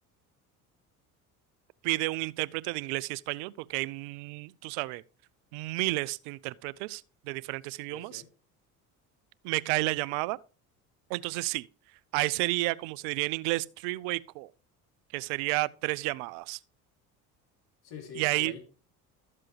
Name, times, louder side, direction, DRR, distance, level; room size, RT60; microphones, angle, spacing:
voice 1, 1.8-5.0 5.5-8.2 9.4-10.4 11.1-11.7 12.1-14.5 15.1-16.6 18.2-18.5, right 22 dB, 70° right, 0.6 m, -31 dB
voice 2, 7.9-8.3 17.8-18.6, left 6 dB, 55° left, 3.1 m, -45 dB
13.0 x 7.5 x 3.2 m
hypercardioid pair, 65°, 45 cm